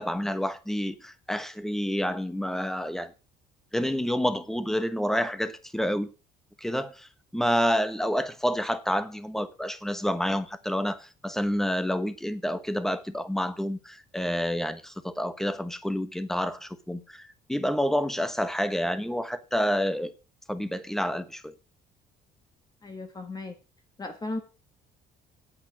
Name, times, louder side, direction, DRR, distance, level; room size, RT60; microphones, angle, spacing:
voice 1, 0.0-3.1 3.7-6.1 6.6-20.1 20.5-21.5, equal, ahead, 1.2 m, -29 dB
voice 2, 22.8-23.5 24.0-24.4, left 2 dB, 25° left, 1.5 m, -35 dB
8.9 x 8.5 x 6.0 m
cardioid pair, 110°, 17 cm